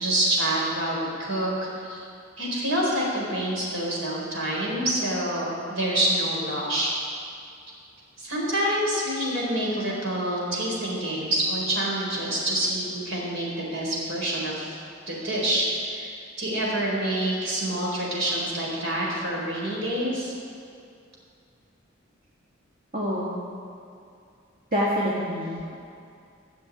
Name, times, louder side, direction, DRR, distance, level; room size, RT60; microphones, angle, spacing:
voice 1, 0.0-2.0 2.4-6.9 8.2-14.8 15.1-20.3, right 1 dB, 75° right, -4 dB, 4.3 m, -27 dB
voice 2, 22.9-23.3 24.7-25.8, equal, 45° right, -7 dB, 2.0 m, -26 dB
15.0 x 7.3 x 8.4 m, 2.4 s
head